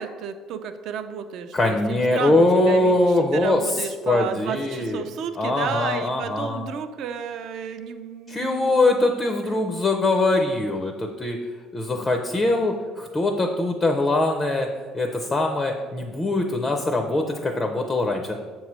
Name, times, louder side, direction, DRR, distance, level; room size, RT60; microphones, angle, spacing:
voice 1, 0.0-8.8 9.4-9.6, right 7 dB, 55° right, 10 dB, 0.4 m, -32 dB
voice 2, 1.5-5.0 5.4-6.7 8.3-11.4 11.7-14.7 14.9-18.3, left 2 dB, 15° left, 4 dB, 0.4 m, -22 dB
7.2 x 3.1 x 5.9 m, 1.5 s
cardioid pair, 160°, 0 cm